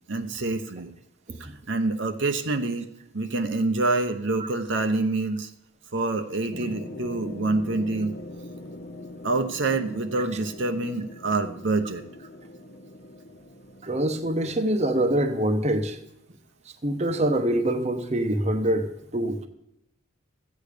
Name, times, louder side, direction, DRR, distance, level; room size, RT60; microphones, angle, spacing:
voice 1, 0.1-0.9 1.4-2.9 3.1-5.5 5.9-8.2 9.2-12.0, right 2 dB, 60° right, 6 dB, 0.9 m, -26 dB
sound 1, 6.5-15.0, left 1 dB, 50° left, 1.2 m, -42 dB
voice 2, 13.8-16.0 16.8-19.5, right 1 dB, 30° right, 7 dB, 0.9 m, -25 dB
14.5 x 8.5 x 5.0 m, 0.82 s
head